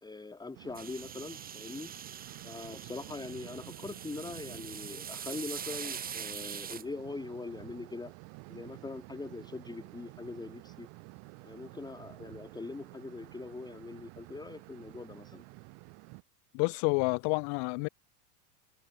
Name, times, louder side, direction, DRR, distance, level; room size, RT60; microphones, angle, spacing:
voice 1, 0.0-1.9 2.4-8.1 8.5-10.9 11.4-15.4, left 3 dB, 10° left, 2.6 m, -42 dB
sound 1, 0.5-16.2, right 40 dB or more, 60° right, 3.0 m, -50 dB
sound 2, 0.7-6.8, right 8 dB, 20° right, 1.3 m, -43 dB
voice 2, 16.5-17.9, left 40 dB or more, 55° left, 1.2 m, -29 dB
supercardioid pair, 130°, 46 cm